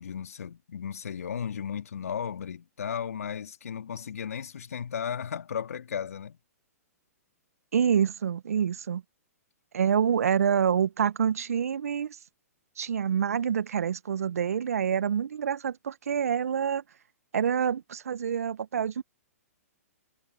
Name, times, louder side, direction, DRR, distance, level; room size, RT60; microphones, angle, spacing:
voice 1, 0.0-6.4, left 7 dB, 70° left, 2.3 m, -35 dB
voice 2, 7.7-9.0 9.7-12.2 12.8-16.8 17.3-19.0, right 8 dB, 70° right, 1.3 m, -27 dB
figure-of-eight pair, 120°, 8 cm